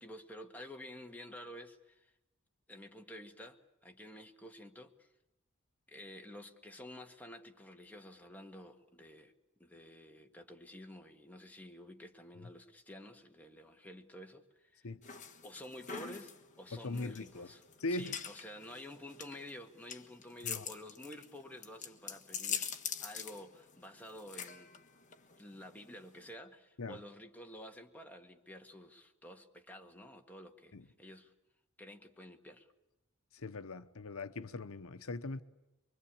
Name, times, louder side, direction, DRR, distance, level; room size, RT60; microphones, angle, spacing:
voice 1, 0.0-2.1 2.7-5.1 5.9-9.3 9.6-14.9 15.4-17.6 17.9-22.7 23.0-24.7 25.4-31.3 31.8-32.7, left 1 dB, 10° left, 1.8 m, -51 dB
sound 1, 15.0-26.3, left 7 dB, 35° left, 1.6 m, -44 dB
voice 2, 16.8-17.5 17.8-18.2 20.4-20.6 26.8-27.0 30.7-30.9 33.3-35.4, left 2 dB, 75° left, 0.9 m, -40 dB
24.5 x 24.5 x 8.7 m
head